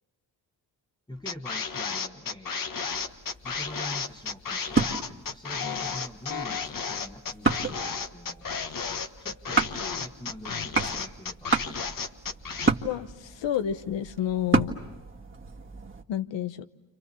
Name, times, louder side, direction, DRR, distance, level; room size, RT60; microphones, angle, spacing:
voice 1, 1.1-2.9 3.4-8.4 9.2-9.7 9.9-11.5, equal, 10° left, 4 dB, 1.5 m, -44 dB
sound 1, 1.3-12.7, left 5 dB, 50° left, 1.5 m, -33 dB
sound 2, 2.9-16.0, right 3 dB, 30° right, 1.8 m, -32 dB
voice 2, 12.8-14.8 16.1-16.7, left 10 dB, 80° left, 12 dB, 1.2 m, -30 dB
30.0 x 27.0 x 7.1 m, 1.0 s
cardioid pair, 70°, 43 cm